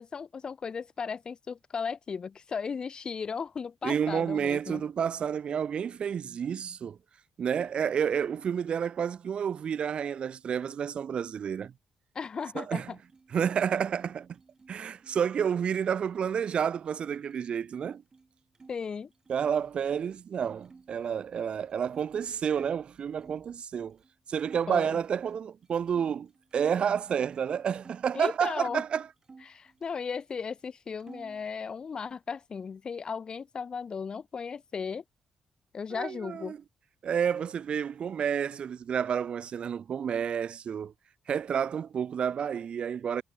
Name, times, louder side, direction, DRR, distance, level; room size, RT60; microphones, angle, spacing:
voice 1, 0.0-4.8 12.1-13.0 18.7-19.1 24.7-25.0 28.1-28.8 29.5-35.0 35.7-36.6, left 6 dB, 40° left, 0.4 m, -36 dB
voice 2, 3.8-7.0 7.4-11.7 12.5-13.0 13.3-14.3 14.7-18.0 19.3-24.0 24.3-29.1 35.9-36.6 37.0-40.9 41.3-43.2, right 7 dB, 50° right, 0.4 m, -30 dB
sound 1, 13.0-18.7 19.0-20.1 20.6-23.5 24.0-24.1 24.4-26.8 27.2-28.8 29.2-30.3 30.6-31.5, right 4 dB, 30° right, 6.2 m, -56 dB
cardioid pair, 125°, 2 cm